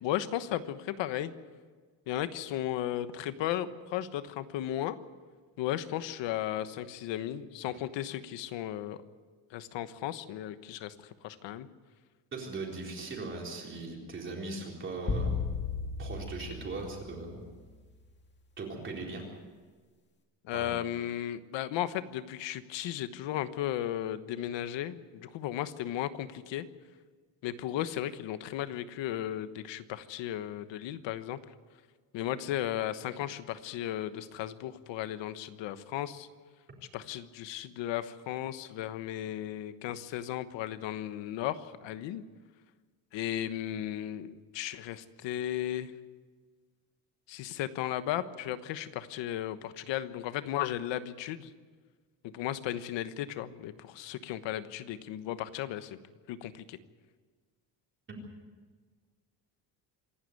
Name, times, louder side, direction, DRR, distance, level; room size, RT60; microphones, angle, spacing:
voice 1, 0.0-1.3 2.1-5.0 5.6-9.0 9.5-11.7 20.4-26.7 27.4-31.4 32.1-36.3 36.9-42.2 43.1-45.9 47.3-51.5 52.2-56.0 56.3-56.8, left 12 dB, 75° left, 12 dB, 1.3 m, -35 dB
voice 2, 12.3-15.4 16.0-17.4 18.6-19.2 20.5-20.7 58.1-58.2, right 3 dB, 25° right, -1 dB, 4.1 m, -39 dB
sound 1, 15.1-17.6, left 4 dB, 25° left, 2.1 m, -34 dB
26.5 x 12.0 x 9.4 m, 1.5 s
cardioid pair, 180°, 44 cm